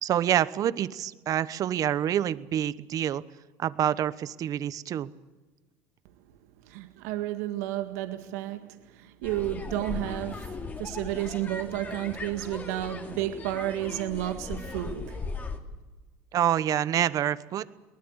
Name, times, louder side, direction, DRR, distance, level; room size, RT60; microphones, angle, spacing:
voice 1, 0.0-3.2 3.6-5.1 16.3-17.7, right 10 dB, 45° right, 16 dB, 1.0 m, -27 dB
voice 2, 6.7-15.2, right 14 dB, 85° right, 7 dB, 1.9 m, -32 dB
sound 1, 9.2-15.6, left 4 dB, 20° left, 2.7 m, -38 dB
22.5 x 19.5 x 8.1 m, 1.2 s
supercardioid pair, 115°, 8 cm